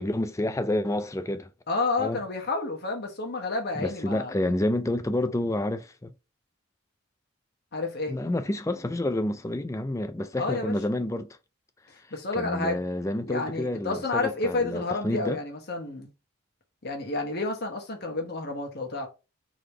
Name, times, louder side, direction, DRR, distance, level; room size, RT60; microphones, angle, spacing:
voice 1, 0.0-1.5 2.0-2.2 3.8-6.1 8.1-11.3 12.3-15.4, left 1 dB, 15° left, 0.4 m, -29 dB
voice 2, 1.7-4.4 7.7-8.2 10.4-10.7 12.1-12.8 13.3-16.1 16.8-19.1, left 3 dB, 50° left, 1.2 m, -30 dB
3.8 x 3.3 x 3.3 m
head